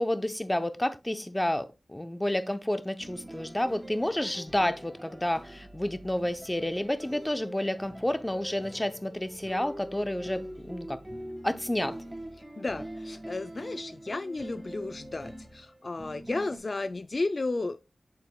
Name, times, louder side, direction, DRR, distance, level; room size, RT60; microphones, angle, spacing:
voice 1, 0.0-11.0 11.4-12.0, left 1 dB, 15° left, 0.6 m, -30 dB
sound 1, 3.0-16.6, right 1 dB, 15° right, 1.6 m, -44 dB
voice 2, 12.6-17.8, left 3 dB, 45° left, 0.3 m, -33 dB
7.7 x 6.9 x 2.2 m
wide cardioid pair, 80°, 0 cm